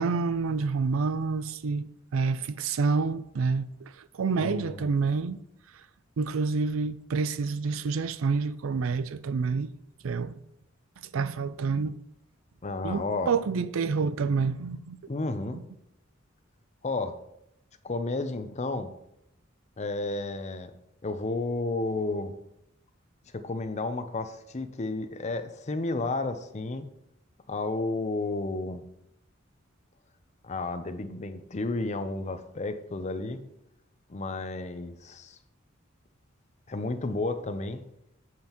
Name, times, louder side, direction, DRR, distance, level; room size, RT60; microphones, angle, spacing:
voice 1, 0.0-5.4 6.2-9.7 10.0-10.4 11.1-12.0 12.8-15.0 15.5-15.6, right 4 dB, 90° right, 0.4 m, -28 dB
voice 2, 4.4-4.9 12.6-13.3 15.1-15.6 16.8-17.2 17.8-18.9 19.8-20.7 21.0-22.3 23.3-26.9 27.5-28.8 30.4-33.4 34.1-35.4 36.7-37.8, left 2 dB, 35° left, 0.6 m, -32 dB
8.8 x 7.6 x 3.0 m
head